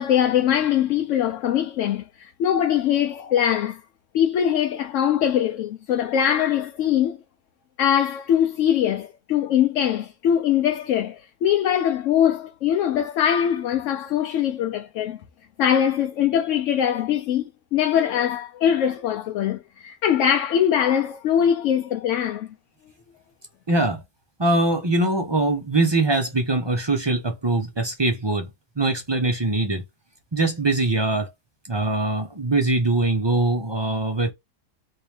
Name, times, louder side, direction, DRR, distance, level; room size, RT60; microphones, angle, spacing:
voice 1, 0.0-3.8 4.1-7.2 7.8-15.2 15.6-22.5, left 9 dB, 70° left, 0.8 m, -22 dB
voice 2, 23.7-24.0 24.4-28.5 28.8-29.8 30.3-31.3 31.7-34.3, right 2 dB, 35° right, 0.4 m, -22 dB
3.0 x 2.8 x 3.2 m
omnidirectional pair, 1.5 m